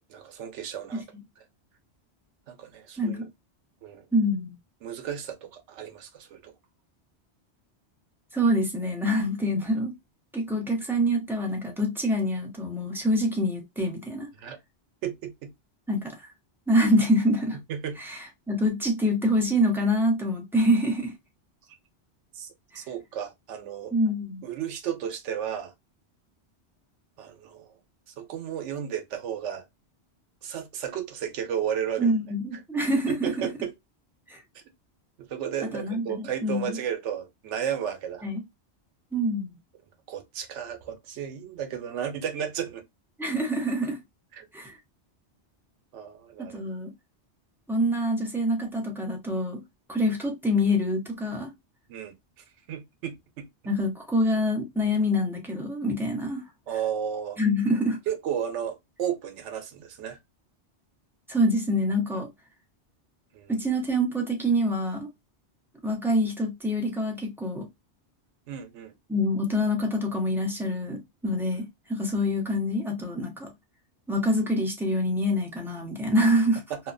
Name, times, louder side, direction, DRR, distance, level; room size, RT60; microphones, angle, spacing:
voice 1, 0.1-1.0 2.5-3.3 3.8-4.1 4.8-6.5 14.3-14.6 15.0-15.5 17.7-18.0 22.3-22.5 22.7-23.9 24.4-25.7 27.2-27.7 28.2-29.6 30.4-32.1 33.1-33.7 34.5-34.6 35.2-38.2 40.1-42.8 44.3-44.4 45.9-46.6 49.9-50.0 51.9-53.5 56.7-57.4 58.1-60.2 63.3-63.5 68.5-68.9 76.7-76.8, right 9 dB, 90° right, 0.9 m, -33 dB
voice 2, 4.1-4.5 8.3-9.9 10.3-14.3 15.9-16.1 16.7-17.6 18.0-21.1 23.9-24.4 32.0-33.3 34.3-34.4 35.7-36.8 38.2-38.4 39.1-39.5 43.2-44.0 44.5-44.8 46.5-46.9 47.7-49.6 49.9-51.5 53.7-56.4 57.4-58.0 61.3-62.3 63.5-65.1 65.8-67.7 69.1-73.5 74.1-76.6, equal, ahead, 0.6 m, -26 dB
2.8 x 2.1 x 2.4 m
omnidirectional pair, 1.2 m